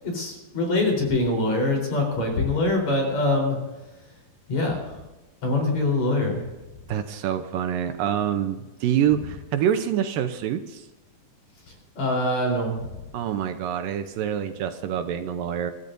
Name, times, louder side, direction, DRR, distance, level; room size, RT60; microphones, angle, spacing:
voice 1, 0.0-3.6 4.5-5.0 5.4-6.4 12.0-12.9, left 2 dB, 50° left, 1 dB, 5.2 m, -24 dB
voice 2, 6.9-10.9 13.1-15.7, right 9 dB, 75° right, 7 dB, 2.4 m, -26 dB
29.5 x 14.0 x 2.7 m, 1.1 s
omnidirectional pair, 4.2 m